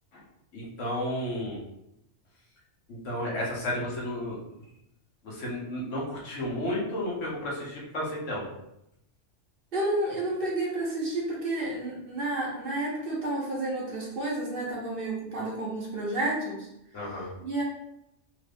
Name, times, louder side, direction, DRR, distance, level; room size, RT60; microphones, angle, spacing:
voice 1, 0.5-1.6 2.9-4.4 5.2-8.4 16.9-17.3, left 1 dB, 80° left, -4 dB, 1.3 m, -32 dB
voice 2, 9.7-16.7 17.0-17.1 17.4-17.6, right 2 dB, 50° right, -4 dB, 1.1 m, -30 dB
3.4 x 2.5 x 3.4 m, 0.82 s
omnidirectional pair, 1.2 m